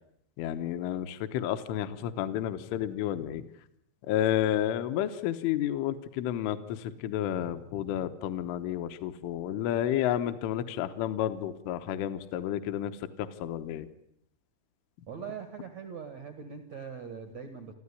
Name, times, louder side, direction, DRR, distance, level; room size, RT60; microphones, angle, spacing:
voice 1, 0.4-3.5 4.0-13.9, left 11 dB, 75° left, 10 dB, 3.3 m, -31 dB
voice 2, 15.1-17.7, right 6 dB, 65° right, 8 dB, 1.7 m, -41 dB
28.5 x 14.5 x 9.9 m, 0.75 s
omnidirectional pair, 5.9 m